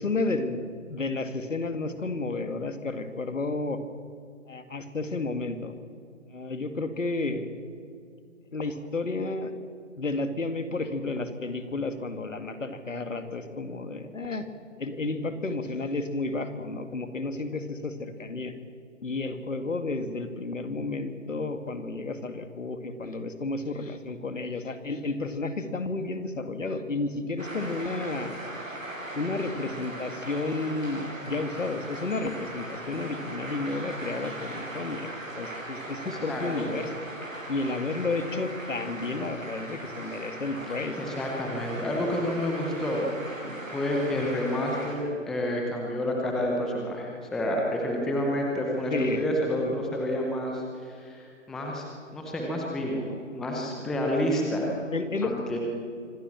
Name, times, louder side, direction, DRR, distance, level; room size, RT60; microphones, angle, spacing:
voice 1, 0.0-3.8 4.5-5.7 6.3-7.5 8.5-9.5 10.0-14.5 14.8-18.5 19.0-28.3 29.1-36.9 37.5-41.0 48.9-49.2 49.6-49.8 54.9-55.3, left 3 dB, 70° left, 9 dB, 2.5 m, -32 dB
sound 1, 27.4-44.9, right 1 dB, 90° right, 7.3 m, -39 dB
voice 2, 36.0-36.7 41.0-43.1 43.7-51.8 52.1-54.8 55.2-55.6, left 1 dB, ahead, 0 dB, 0.7 m, -29 dB
25.0 x 17.5 x 7.4 m, 2.3 s
figure-of-eight pair, 145°, 39 cm